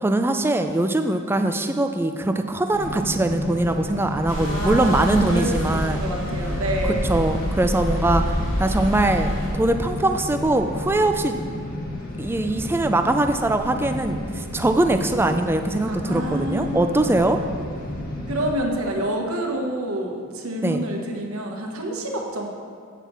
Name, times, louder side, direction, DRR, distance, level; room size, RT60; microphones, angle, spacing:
voice 1, 0.0-6.0 7.1-11.4 12.2-17.4 20.6-20.8, right 2 dB, 10° right, 7 dB, 0.4 m, -22 dB
sound 1, 2.7-18.6, left 1 dB, 45° left, 1.2 m, -32 dB
sound 2, 4.3-9.5, equal, 70° left, 2.6 m, -27 dB
voice 2, 4.3-7.0 15.9-17.2 18.3-22.5, right 1 dB, 80° right, 1 dB, 1.2 m, -28 dB
7.4 x 5.4 x 7.2 m, 2.1 s
head